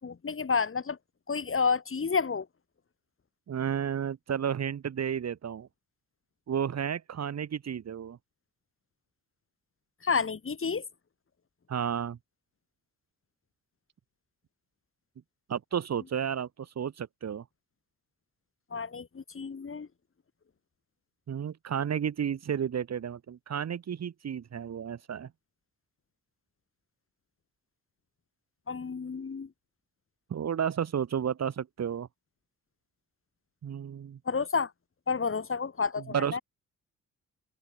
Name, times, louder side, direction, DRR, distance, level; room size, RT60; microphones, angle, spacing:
voice 1, 0.0-1.0 1.3-2.5 10.0-10.8 18.7-19.9 28.7-29.5 34.3-34.7 35.1-36.4, left 5 dB, 35° left, 7.4 m, -30 dB
voice 2, 3.5-5.7 6.5-8.2 11.7-12.2 15.5-17.4 21.3-25.3 30.3-32.1 33.6-34.2 36.1-36.4, right 8 dB, 45° right, 2.5 m, -32 dB
figure-of-eight pair, 45°, 37 cm